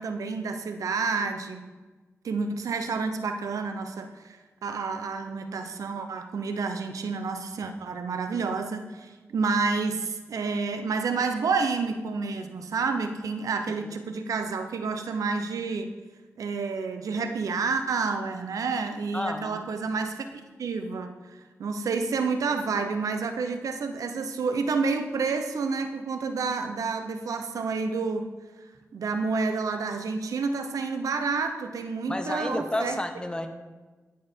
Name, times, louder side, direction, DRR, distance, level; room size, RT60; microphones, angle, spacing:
voice 1, 0.0-1.7 2.2-15.9 16.4-21.1 21.6-28.3 28.9-33.0, right 4 dB, 85° right, 7 dB, 0.8 m, -29 dB
voice 2, 19.1-19.6 32.1-33.5, left 1 dB, 15° left, 6 dB, 1.4 m, -31 dB
14.5 x 7.4 x 4.5 m, 1.3 s
cardioid pair, 60°, 6 cm